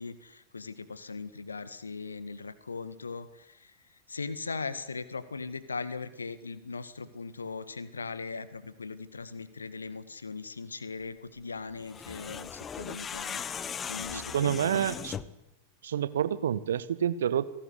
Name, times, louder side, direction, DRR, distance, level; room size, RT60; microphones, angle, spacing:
voice 1, 0.0-14.8, left 4 dB, 75° left, 15 dB, 1.8 m, -39 dB
sound 1, 11.8-15.4, left 7 dB, 20° left, 1.1 m, -38 dB
voice 2, 14.1-15.2 15.8-17.4, right 9 dB, 65° right, 15 dB, 1.5 m, -28 dB
28.0 x 18.0 x 9.8 m, 0.91 s
figure-of-eight pair, 90°, 0 cm